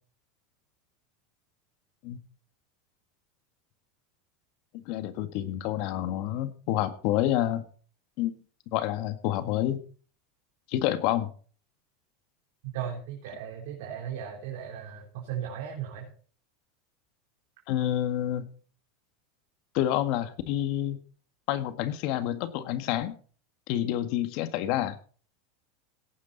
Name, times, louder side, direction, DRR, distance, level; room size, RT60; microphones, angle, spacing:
voice 1, 4.7-7.6 8.2-8.3 8.7-9.8 10.7-11.3 17.7-18.5 19.7-21.0 21.5-23.1 23.7-25.0, left 12 dB, 60° left, 9 dB, 1.8 m, -28 dB
voice 2, 12.7-16.1, right 9 dB, 70° right, -1 dB, 3.6 m, -36 dB
17.5 x 9.7 x 4.1 m, 0.42 s
supercardioid pair, 110°, 0 cm